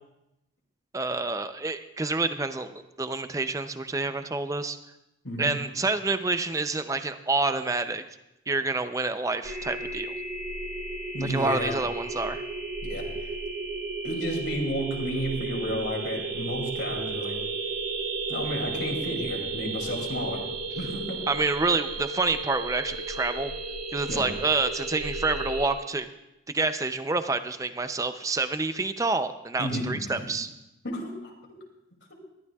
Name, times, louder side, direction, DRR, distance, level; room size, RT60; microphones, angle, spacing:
voice 1, 0.9-4.8 5.4-8.0 8.5-10.1 11.2-12.4 21.3-23.5 23.9-26.1 26.5-30.5, right 3 dB, 15° right, 10 dB, 0.5 m, -28 dB
sound 1, 9.4-25.7, right 3 dB, 85° right, 2.7 m, -34 dB
voice 2, 11.1-11.8 12.8-13.0 14.0-17.3 18.3-20.4 20.7-21.2 24.1-24.3 29.6-30.2 30.8-31.6, equal, 75° left, 0 dB, 2.7 m, -32 dB
20.5 x 12.5 x 2.4 m, 0.90 s
head